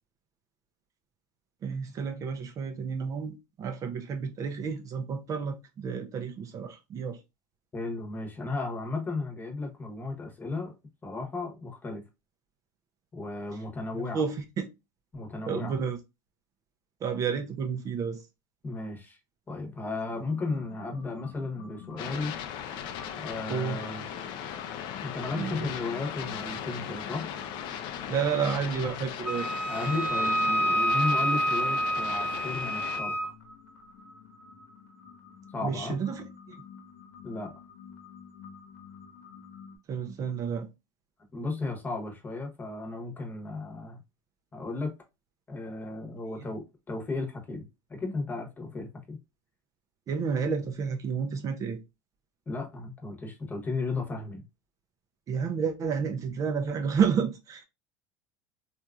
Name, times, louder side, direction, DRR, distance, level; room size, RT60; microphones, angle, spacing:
voice 1, 1.6-7.2 13.9-14.7 15.5-16.0 17.0-18.2 23.5-23.8 25.4-25.7 28.1-29.5 35.6-36.6 39.9-40.7 46.3-46.5 50.1-51.8 55.3-57.7, right 6 dB, 35° right, 0.4 m, -31 dB
voice 2, 7.7-10.7 11.0-12.0 13.1-14.2 15.1-15.8 18.6-19.2 19.5-22.4 23.2-24.1 25.0-27.3 29.7-33.3 35.5-36.0 37.2-37.5 41.3-44.0 44.5-44.9 45.5-49.2 52.5-54.4, left 3 dB, 20° left, 1.0 m, -34 dB
sound 1, 20.1-39.8, left 6 dB, 85° left, 0.9 m, -50 dB
sound 2, 22.0-33.0, left 9 dB, 60° left, 0.4 m, -38 dB
Wind instrument woodwind instrument, 29.3-33.3, right 1 dB, 15° right, 1.1 m, -28 dB
2.9 x 2.4 x 2.3 m
supercardioid pair, 110°, 9 cm